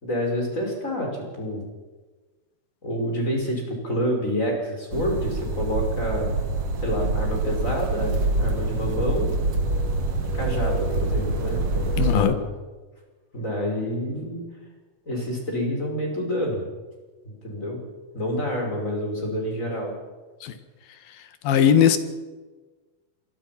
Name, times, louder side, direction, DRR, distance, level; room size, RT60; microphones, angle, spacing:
voice 1, 0.0-1.7 2.8-6.3 6.8-9.3 10.3-12.5 13.3-14.5 15.1-16.6 17.2-17.8 18.1-19.9, equal, 20° left, 1 dB, 5.8 m, -28 dB
sound 1, 4.9-12.2, right 2 dB, 45° right, 2.8 m, -25 dB
voice 2, 12.0-12.4 20.4-20.6 21.4-22.0, left 8 dB, 80° left, 11 dB, 3.4 m, -18 dB
26.5 x 21.5 x 5.9 m, 1.3 s
omnidirectional pair, 4.1 m